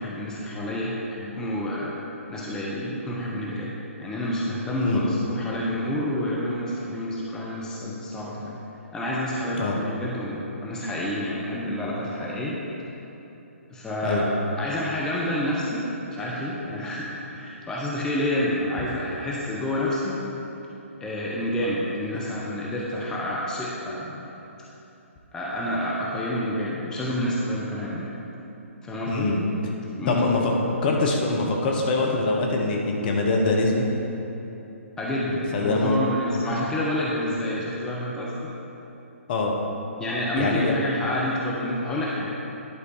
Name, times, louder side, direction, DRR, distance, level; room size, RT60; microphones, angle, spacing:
voice 1, 0.0-1.9 2.3-3.7 4.0-8.6 8.9-12.5 13.7-14.3 14.6-20.2 21.0-24.2 25.3-28.0 28.8-29.3 30.0-30.3 35.0-38.4 40.0-42.3, left 1 dB, 10° left, -6 dB, 0.9 m, -28 dB
voice 2, 4.7-5.0 9.6-9.8 14.0-14.3 29.1-29.4 30.1-30.4 30.8-33.9 35.5-36.0 39.3-39.5 40.3-40.7, left 3 dB, 40° left, 0 dB, 1.2 m, -23 dB
10.5 x 4.9 x 4.7 m, 3.0 s
figure-of-eight pair, 130°, 8 cm